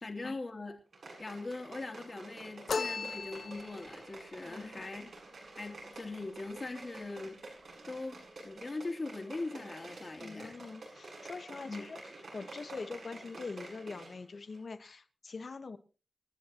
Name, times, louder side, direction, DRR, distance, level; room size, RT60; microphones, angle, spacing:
voice 1, 0.0-0.8 1.2-5.1 5.6-7.4 7.9-8.2 8.4-10.6 11.7-11.8, left 3 dB, 40° left, 2.9 m, -41 dB
sound 1, 0.9-14.2 14.5-14.6, right 2 dB, 80° right, 7.7 m, -49 dB
sound 2, 2.7-3.9, left 5 dB, 80° left, 0.6 m, -36 dB
voice 2, 4.4-4.9 10.2-12.0 12.3-15.8, left 4 dB, 60° left, 1.3 m, -44 dB
26.5 x 10.5 x 3.0 m
wide cardioid pair, 125°, 0 cm